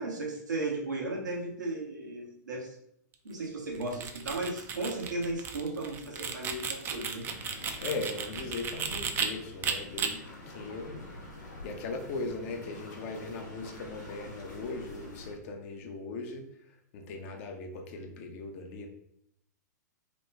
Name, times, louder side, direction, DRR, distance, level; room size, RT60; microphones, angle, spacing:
voice 1, 0.0-2.8 3.2-7.3, right 2 dB, 85° right, -1 dB, 1.0 m, -35 dB
sound 1, 3.8-9.3 9.6-10.1, right 7 dB, 25° right, 0.4 m, -34 dB
sound 2, 7.2-15.3, left 1 dB, 90° left, 1.0 m, -47 dB
voice 2, 7.8-11.1 11.6-16.4 16.9-18.9, left 3 dB, 50° left, 4 dB, 0.6 m, -39 dB
3.0 x 2.1 x 3.3 m, 0.70 s
hypercardioid pair, 110°, 10 cm